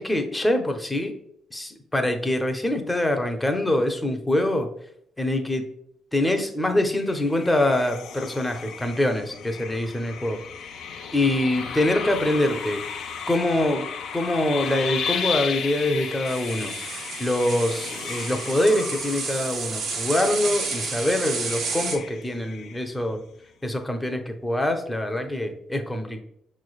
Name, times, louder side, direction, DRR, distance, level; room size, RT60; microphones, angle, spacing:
voice 1, 0.0-1.2 1.5-4.7 5.2-5.6 6.1-10.4 11.1-12.8 13.3-13.8 14.1-23.2 23.6-26.2, left 1 dB, 10° left, 5 dB, 0.6 m, -24 dB
sound 1, 6.9-23.2, left 7 dB, 80° left, 0.5 m, -35 dB
sound 2, 16.2-22.0, right 4 dB, 70° right, 0.8 m, -31 dB
5.6 x 3.2 x 2.3 m, 0.71 s
cardioid pair, 90°, 0 cm